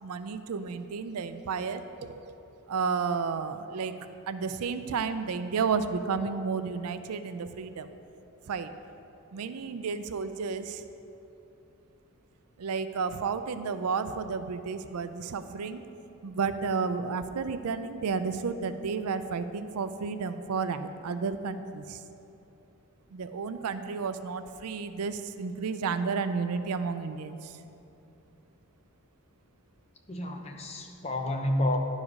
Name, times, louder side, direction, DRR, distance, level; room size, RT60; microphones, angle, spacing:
voice 1, 0.0-2.4 2.7-3.9 4.3-7.9 8.5-8.7 9.3-10.8 12.6-15.8 16.2-22.0 23.1-27.6, right 5 dB, 80° right, 11 dB, 0.4 m, -32 dB
voice 2, 30.1-31.8, left 1 dB, 30° left, 3 dB, 0.7 m, -30 dB
11.0 x 4.9 x 5.3 m, 2.8 s
head